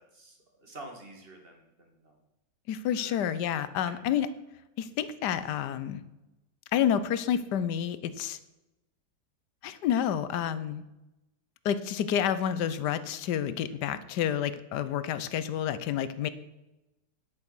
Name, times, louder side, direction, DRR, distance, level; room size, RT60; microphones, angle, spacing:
voice 1, 0.0-2.1 3.0-3.2 3.8-3.9 13.6-13.7, right 2 dB, 30° right, 2 dB, 2.4 m, -48 dB
voice 2, 2.7-4.3 4.8-6.0 6.7-8.4 9.6-10.8 11.6-16.3, left 9 dB, 70° left, 14 dB, 1.3 m, -29 dB
10.0 x 8.8 x 6.2 m, 0.95 s
omnidirectional pair, 1.9 m